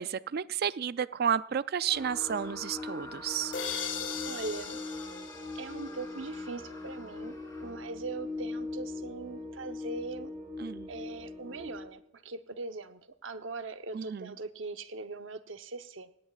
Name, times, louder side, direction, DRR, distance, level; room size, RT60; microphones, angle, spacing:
voice 1, 0.0-3.6 10.6-10.9 13.9-14.3, right 8 dB, 55° right, 16 dB, 0.4 m, -32 dB
Screaming, 1.8-8.1, left 2 dB, 15° left, 6.8 m, -49 dB
sound 1, 1.9-11.8, left 2 dB, 5° right, 6.2 m, -41 dB
sound 2, 3.5-6.4, left 6 dB, 70° left, 2.3 m, -38 dB
voice 2, 4.3-4.8 5.5-7.3 7.6-10.3 10.9-16.1, right 3 dB, 90° right, 8 dB, 0.9 m, -41 dB
18.5 x 17.0 x 2.4 m, 0.79 s
head